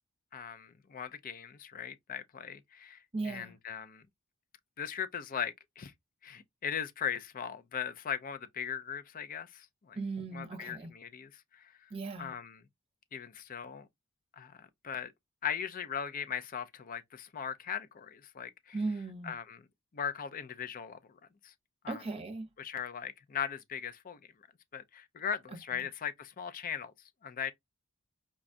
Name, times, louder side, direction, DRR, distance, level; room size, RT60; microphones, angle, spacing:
voice 1, 0.3-4.0 4.8-5.9 6.2-10.0 10.3-11.7 12.2-12.6 13.1-13.9 14.4-15.1 15.4-18.8 19.2-19.6 19.9-21.0 21.4-21.5 21.8-22.0 22.6-24.2 24.7-26.9 27.2-27.5, left 8 dB, 40° left, 0.4 m, -39 dB
voice 2, 3.1-3.5 9.9-10.9 11.9-12.3 18.7-19.3 21.9-22.5 25.7-25.9, right 3 dB, 25° right, 0.8 m, -37 dB
4.9 x 2.3 x 2.5 m
head